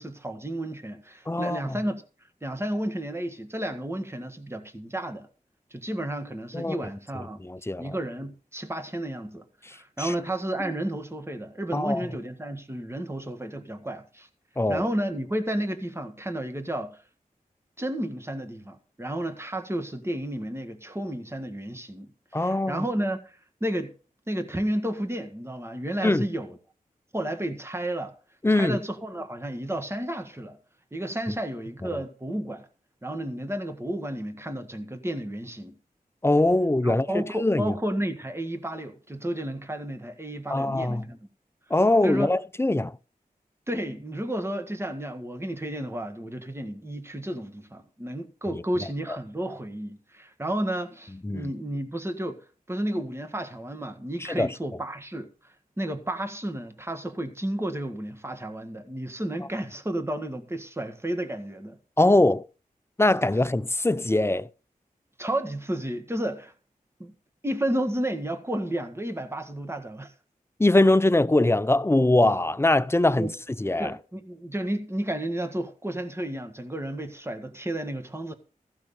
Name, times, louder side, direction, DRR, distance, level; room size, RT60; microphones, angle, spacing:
voice 1, 0.0-2.0 2.4-5.3 5.7-7.4 7.8-9.4 9.7-14.3 14.7-17.0 17.8-23.9 24.3-26.6 27.1-28.1 28.5-30.6 30.9-32.7 33.0-35.7 36.8-41.2 42.0-42.3 43.7-55.3 55.8-61.8 65.2-66.5 67.0-67.1 67.4-70.1 73.2-73.3 73.8-78.3, right 1 dB, 15° right, 1.7 m, -32 dB
voice 2, 1.3-1.8 6.5-6.8 7.1-7.9 9.6-10.1 11.7-12.1 14.6-14.9 22.3-22.9 26.0-26.3 28.4-28.8 31.9-32.0 36.2-37.8 40.5-41.0 41.7-43.0 51.2-51.5 54.2-54.5 62.0-62.5 63.0-64.5 70.6-73.3 73.6-74.0, left 2 dB, 15° left, 0.5 m, -22 dB
15.0 x 5.9 x 7.0 m
wide cardioid pair, 65°, 15 cm